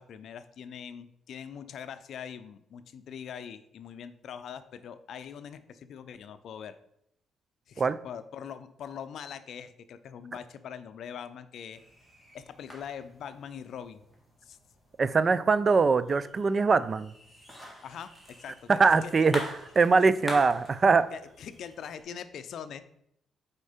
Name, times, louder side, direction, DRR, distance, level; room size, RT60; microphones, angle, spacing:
voice 1, 0.0-6.8 7.7-11.8 12.3-14.0 14.4-14.6 17.8-18.7 19.0-19.1 20.0-20.1 21.1-22.8, left 8 dB, 70° left, 12 dB, 0.4 m, -42 dB
sound 1, 11.7-22.0, equal, 5° right, 2.1 m, -45 dB
voice 2, 15.0-17.1 18.7-19.4 19.8-21.1, right 4 dB, 40° right, 16 dB, 0.3 m, -22 dB
5.2 x 4.4 x 5.0 m, 0.74 s
cardioid pair, 90°, 0 cm